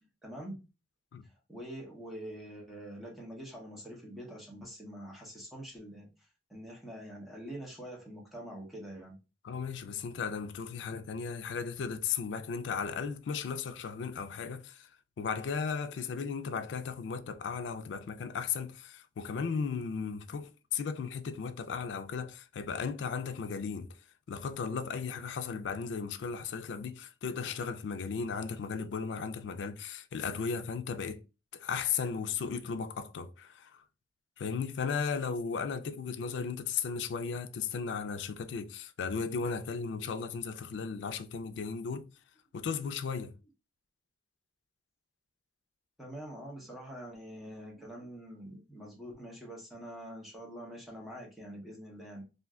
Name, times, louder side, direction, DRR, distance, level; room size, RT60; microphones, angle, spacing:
voice 1, 0.2-0.6 1.2-6.1 6.5-9.2 46.0-52.2, equal, ahead, 0.8 m, -45 dB
voice 2, 9.4-14.9 15.2-23.9 24.3-31.2 31.5-33.8 34.4-42.1 42.5-43.3, left 6 dB, 90° left, 0.4 m, -36 dB
2.5 x 2.1 x 3.5 m
head